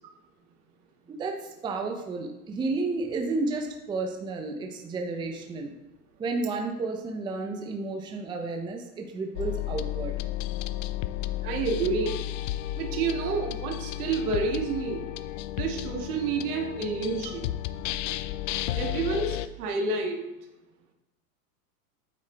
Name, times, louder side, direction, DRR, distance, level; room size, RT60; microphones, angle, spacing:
voice 1, 1.1-5.7 6.2-10.1, right 3 dB, 10° right, 3 dB, 0.6 m, -32 dB
sound 1, 9.3-19.5, left 14 dB, 55° left, 0.5 m, -33 dB
voice 2, 11.4-12.2 12.8-15.1 15.6-17.5 18.7-20.3, right 4 dB, 75° right, 2 dB, 1.9 m, -29 dB
8.8 x 7.1 x 3.3 m, 1.0 s
supercardioid pair, 135°, 46 cm